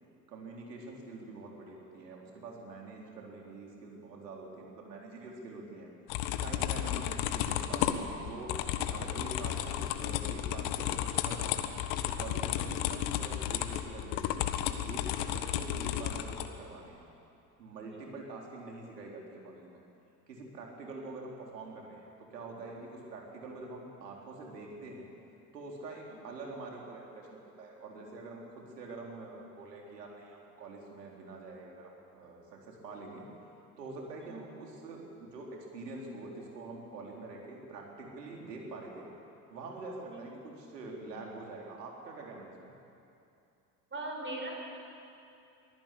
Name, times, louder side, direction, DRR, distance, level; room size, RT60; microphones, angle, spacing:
voice 1, 0.3-5.9 6.4-8.5 8.9-11.6 12.0-17.0 17.6-19.8 20.3-25.1 25.5-33.3 33.8-39.1 39.5-42.7, right 3 dB, 80° right, -1 dB, 4.2 m, -45 dB
sound 1, 6.1-16.5, left 11 dB, 55° left, 1.5 m, -33 dB
voice 2, 43.9-44.5, right 2 dB, 25° right, 0 dB, 7.0 m, -39 dB
23.5 x 15.0 x 8.6 m, 2.7 s
figure-of-eight pair, 65°, 48 cm